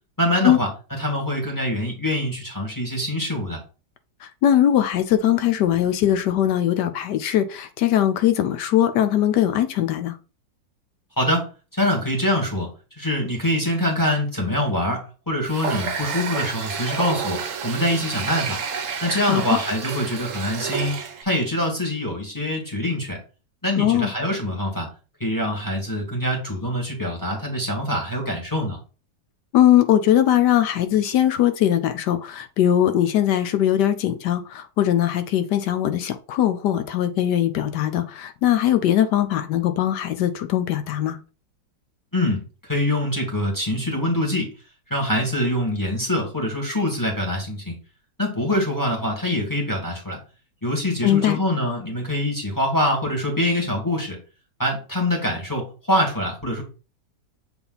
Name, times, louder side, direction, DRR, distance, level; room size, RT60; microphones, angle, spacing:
voice 1, 0.2-0.7 1.0-3.6 11.2-12.7 13.0-18.6 19.0-23.2 23.6-24.9 25.2-28.8 42.1-44.5 44.9-47.7 48.2-50.2 50.6-54.2 54.6-56.6, left 1 dB, 10° left, 2.0 m, -24 dB
voice 2, 4.2-10.2 19.3-19.6 23.8-24.1 29.5-41.2 51.0-51.4, left 11 dB, 70° left, 1.2 m, -20 dB
Water tap faucet, 15.4-21.2, right 6 dB, 55° right, 0.9 m, -29 dB
6.9 x 3.6 x 4.0 m
omnidirectional pair, 2.0 m